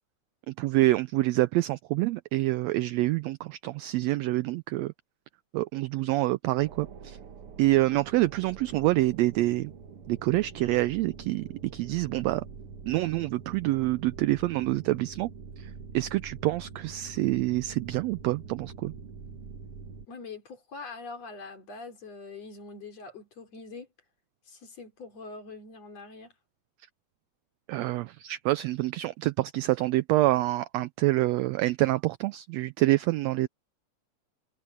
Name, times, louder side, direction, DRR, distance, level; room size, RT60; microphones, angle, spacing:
voice 1, 0.5-4.9 5.5-7.2 7.6-9.7 10.1-12.4 12.9-15.3 15.6-18.9 27.7-33.5, right 17 dB, 85° right, 1.5 m, -27 dB
sound 1, 6.6-20.1, right 5 dB, 50° right, 2.2 m, -45 dB
voice 2, 20.1-23.9 24.5-26.3, left 4 dB, 55° left, 4.8 m, -43 dB
omnidirectional pair, 3.5 m